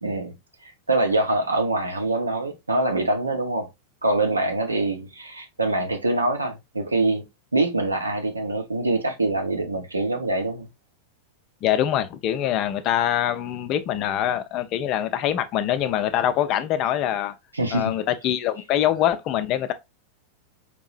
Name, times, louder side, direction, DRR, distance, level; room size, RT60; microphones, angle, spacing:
voice 1, 0.0-0.4 0.6-3.7 4.0-7.2 7.5-10.7 17.5-17.9, right 2 dB, 80° right, 0.8 m, -24 dB
voice 2, 11.6-17.3 17.7-19.7, left 11 dB, 40° left, 0.5 m, -24 dB
4.5 x 2.7 x 2.4 m
figure-of-eight pair, 90°, 0 cm